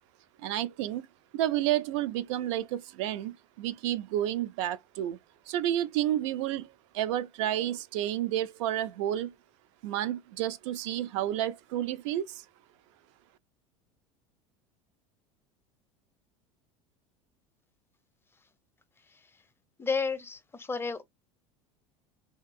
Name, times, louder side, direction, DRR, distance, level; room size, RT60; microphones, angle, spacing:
voice 1, 0.4-1.1 1.3-5.2 5.5-9.3 9.8-12.4, right 12 dB, 60° right, 0.4 m, -30 dB
voice 2, 19.8-21.0, left 4 dB, 15° left, 0.6 m, -32 dB
2.7 x 2.4 x 2.4 m
figure-of-eight pair, 75°, 17 cm